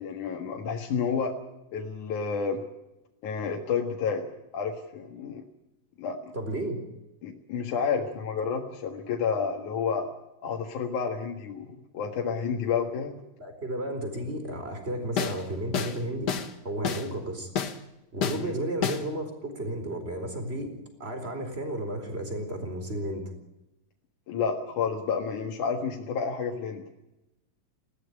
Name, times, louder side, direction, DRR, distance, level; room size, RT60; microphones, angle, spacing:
voice 1, 0.0-1.3 1.7-2.6 3.2-4.3 4.5-5.4 6.0-6.3 7.2-10.1 10.4-13.1 18.3-18.5 24.3-26.8, left 6 dB, 60° left, 1 dB, 3.0 m, -30 dB
voice 2, 6.3-6.8 13.4-16.4 16.6-17.5 18.1-20.7 21.0-23.3, right 1 dB, 15° right, 7 dB, 4.2 m, -33 dB
sound 1, 15.2-15.4 15.7-16.0 16.3-16.5 16.8-17.1 17.6-17.8 18.2-18.4 18.8-19.1, left 7 dB, 80° left, 0.9 m, -29 dB
20.0 x 16.5 x 10.0 m, 0.94 s
omnidirectional pair, 4.1 m